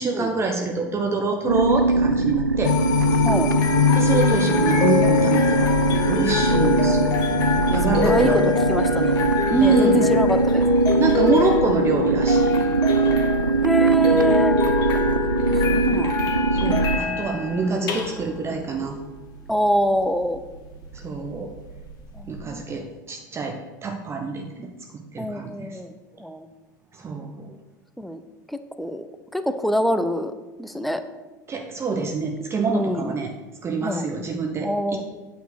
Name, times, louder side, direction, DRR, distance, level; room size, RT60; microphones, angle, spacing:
voice 1, 0.0-2.8 3.9-5.7 6.1-7.1 7.7-8.5 9.5-10.1 11.0-12.5 16.5-19.0 20.9-21.5 22.3-25.8 26.9-27.5 31.5-33.3 33.6-35.0, right 4 dB, 25° right, 3 dB, 0.9 m, -26 dB
sound 1, 1.5-17.0, right 4 dB, 85° right, 0.4 m, -22 dB
sound 2, 2.6-11.0 11.4-11.5, left 10 dB, 65° left, 0.6 m, -25 dB
sound 3, 3.3-22.4, left 6 dB, 40° left, 1.7 m, -26 dB
voice 2, 7.9-8.4 8.7-9.2 9.6-10.6 11.9-12.1 13.6-14.6 15.6-16.1 19.5-20.4 22.1-22.7 25.2-25.9 26.2-26.5 28.0-28.2 28.5-29.1 29.3-30.3 30.6-31.0 32.7-33.1 33.8-34.1 34.6-35.0, equal, ahead, 9 dB, 0.6 m, -25 dB
8.9 x 4.6 x 6.7 m, 1.2 s
figure-of-eight pair, 75°, 10 cm